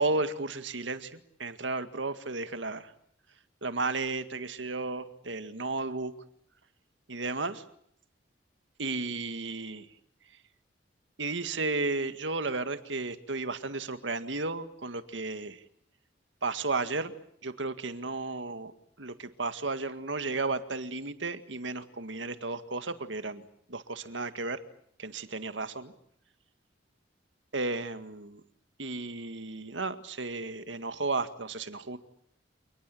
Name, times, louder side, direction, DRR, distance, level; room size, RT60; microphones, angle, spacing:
voice 1, 0.0-2.9 3.6-6.1 7.1-7.6 8.8-9.9 11.2-15.6 16.4-17.1 17.4-18.7 19.0-23.4 23.7-24.6 25.0-25.9 27.5-28.4 28.8-32.0, right 3 dB, 85° right, 10 dB, 1.9 m, -33 dB
29.0 x 19.5 x 8.4 m, 0.69 s
head